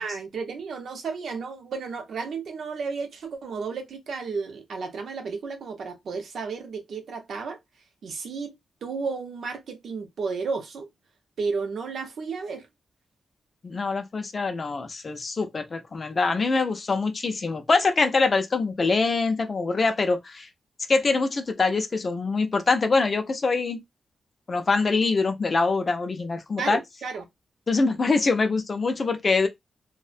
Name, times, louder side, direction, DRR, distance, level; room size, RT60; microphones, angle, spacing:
voice 1, 0.0-7.6 8.0-8.5 8.8-10.9 11.4-12.7 26.6-27.2, right 4 dB, 65° right, 0.6 m, -33 dB
voice 2, 13.6-20.5 20.9-23.8 24.5-26.8 27.7-29.5, left 3 dB, 30° left, 0.3 m, -24 dB
2.4 x 2.0 x 2.4 m
wide cardioid pair, 160°, 0 cm